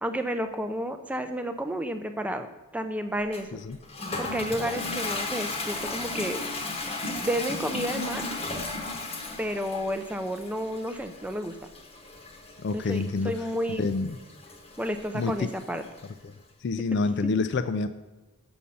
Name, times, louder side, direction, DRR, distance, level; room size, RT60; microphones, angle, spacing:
voice 1, 0.0-3.6 4.2-6.4 7.1-8.2 9.4-11.6 12.7-13.9 14.8-15.8 17.2-17.3, equal, 5° right, 7 dB, 0.4 m, -31 dB
Toilet flush, 3.3-16.1, left 3 dB, 25° left, 0.9 m, -36 dB
voice 2, 12.6-13.3 13.8-14.2 15.1-15.5 16.2-16.3 16.6-17.9, left 3 dB, 50° left, 12 dB, 0.4 m, -27 dB
7.1 x 6.3 x 5.4 m, 1.1 s
head